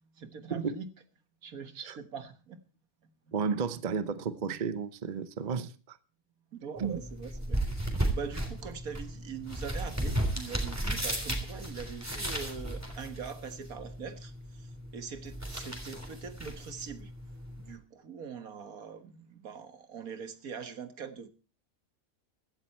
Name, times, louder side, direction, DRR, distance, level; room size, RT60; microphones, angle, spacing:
voice 1, 0.2-0.9 1.4-2.6 3.3-3.6 6.5-17.1 17.6-21.3, right 6 dB, 75° right, 1.9 m, -43 dB
voice 2, 3.3-6.0 6.8-7.0, right 5 dB, 35° right, 0.8 m, -32 dB
sound 1, 6.8-17.8, right 1 dB, 10° right, 3.3 m, -35 dB
16.0 x 12.5 x 4.3 m
omnidirectional pair, 1.5 m